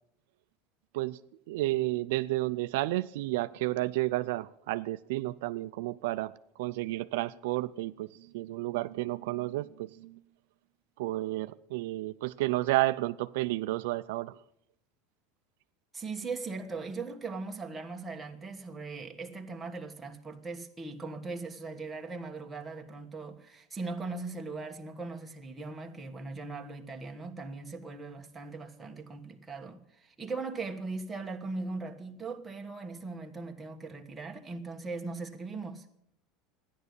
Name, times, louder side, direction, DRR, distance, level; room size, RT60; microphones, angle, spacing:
voice 1, 1.5-10.2 11.0-14.4, right 18 dB, 80° right, 0.5 m, -31 dB
voice 2, 15.9-35.9, right 3 dB, 15° right, 1.4 m, -39 dB
13.5 x 10.5 x 8.2 m
supercardioid pair, 140°, 0 cm